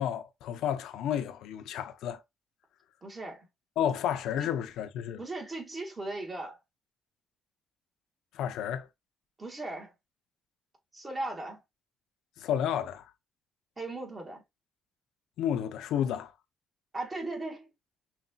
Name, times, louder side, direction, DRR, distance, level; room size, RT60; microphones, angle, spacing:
voice 1, 0.0-2.2 3.8-5.2 8.3-8.9 12.4-13.0 15.4-16.3, left 9 dB, 85° left, 0.5 m, -31 dB
voice 2, 3.0-3.5 4.4-4.5 5.2-6.6 9.4-9.9 10.9-11.6 13.8-14.4 16.9-17.7, right 2 dB, 25° right, 1.8 m, -37 dB
5.7 x 2.6 x 2.3 m
cardioid pair, 90°, 0 cm